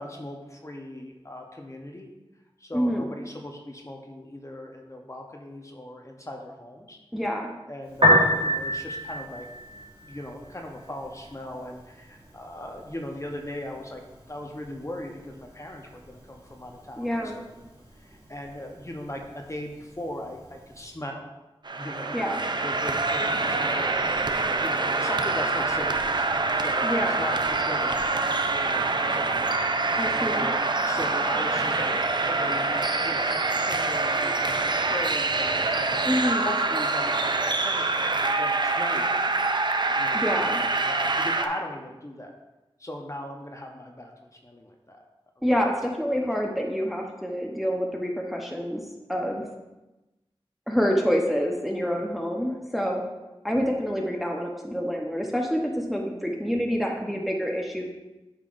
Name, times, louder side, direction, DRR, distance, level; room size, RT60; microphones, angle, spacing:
voice 1, 0.0-2.1 2.6-7.0 7.7-9.5 10.1-14.0 14.3-17.2 18.0-21.3 21.7-24.1 24.4-26.3 26.5-36.0 36.4-39.1 39.9-40.3 40.8-42.3 42.8-45.0 52.4-52.6, left 1 dB, 30° left, 2 dB, 0.8 m, -39 dB
voice 2, 2.7-3.1 7.1-7.5 17.0-17.4 22.1-22.4 26.8-27.2 30.0-30.5 36.0-36.5 40.1-40.6 45.4-48.8 49.1-49.4 50.7-53.0 53.4-57.8, equal, ahead, 0 dB, 0.9 m, -27 dB
Piano, 7.9-20.9, equal, 80° right, 2.0 m, -31 dB
sound 1, 21.6-41.5, right 3 dB, 50° right, 0.5 m, -25 dB
8.6 x 5.7 x 2.5 m, 1.0 s
wide cardioid pair, 50°, 10 cm